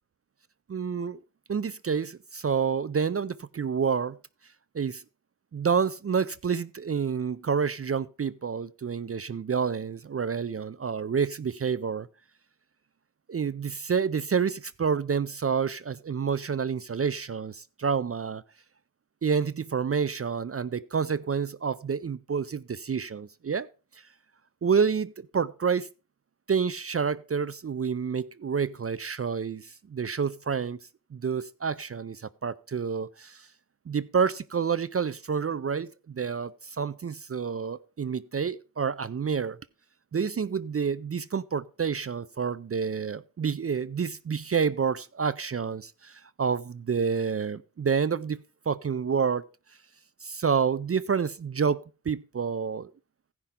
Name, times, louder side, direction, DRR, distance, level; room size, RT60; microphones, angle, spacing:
voice 1, 0.7-1.2 1.5-4.2 4.7-5.0 5.5-12.1 13.3-18.4 19.2-23.7 24.6-25.9 26.5-30.8 31.1-33.5 33.9-39.6 40.1-49.4 50.2-52.9, right 6 dB, 40° right, 0.4 m, -28 dB
15.5 x 5.9 x 3.6 m
cardioid pair, 40°, 36 cm